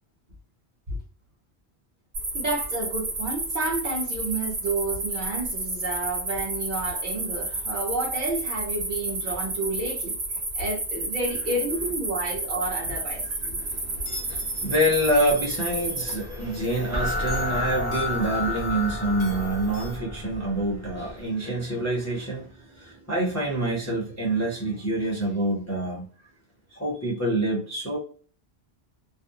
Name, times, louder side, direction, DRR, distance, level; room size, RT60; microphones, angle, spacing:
sound 1, 2.1-16.2, right 2 dB, 75° right, 1.1 m, -31 dB
voice 1, 2.3-10.1 10.5-13.2, right 2 dB, 50° right, 1.0 m, -30 dB
sound 2, 13.1-20.0, left 2 dB, 60° left, 0.8 m, -42 dB
voice 2, 13.2-22.5 22.7-26.0 26.7-28.0, right 1 dB, 20° left, 0.6 m, -27 dB
sound 3, 16.2-21.2, left 2 dB, 20° right, 0.7 m, -31 dB
2.5 x 2.0 x 2.7 m
omnidirectional pair, 1.1 m